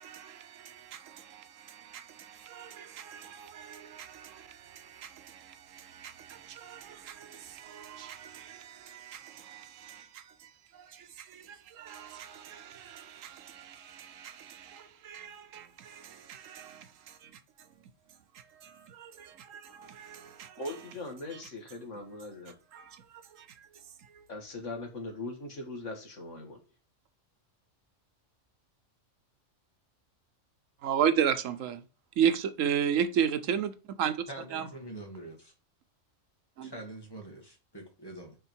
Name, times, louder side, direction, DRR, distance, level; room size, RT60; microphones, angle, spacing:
voice 1, 0.0-17.7 18.3-20.7 21.3-21.4 22.7-24.3 30.8-31.9 32.2-34.2 34.5-34.7 36.6-36.7, right 8 dB, 90° right, 1.2 m, -35 dB
voice 2, 20.6-22.5 24.3-26.6, left 2 dB, 70° left, 2.1 m, -40 dB
voice 3, 34.3-35.5 36.6-38.4, right 1 dB, 20° left, 1.8 m, -45 dB
9.1 x 3.8 x 4.6 m
omnidirectional pair, 1.3 m